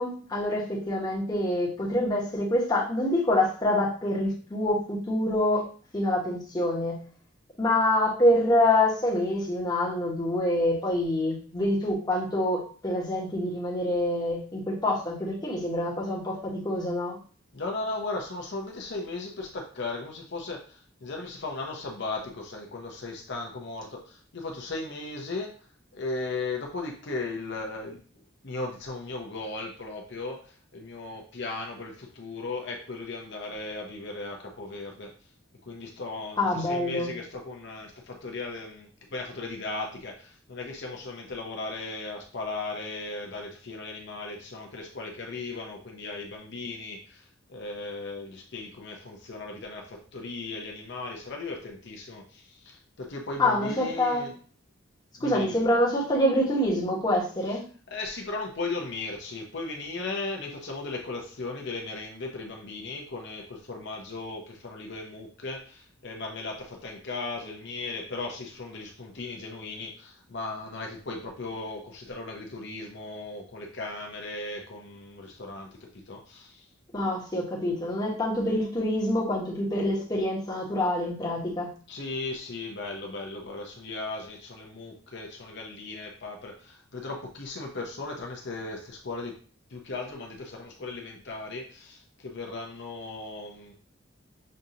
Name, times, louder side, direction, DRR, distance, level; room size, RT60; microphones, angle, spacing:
voice 1, 0.0-5.7 5.9-7.0 7.6-17.2 36.4-37.1 53.4-54.3 55.2-57.6 76.9-81.7, left 1 dB, 20° left, -4 dB, 1.1 m, -26 dB
voice 2, 17.5-28.0 28.4-35.1 35.7-54.3 55.2-55.6 57.5-57.6 57.9-76.7 81.9-89.4 89.7-93.7, left 3 dB, 60° left, 1 dB, 0.8 m, -37 dB
6.4 x 2.6 x 2.8 m, 0.41 s
head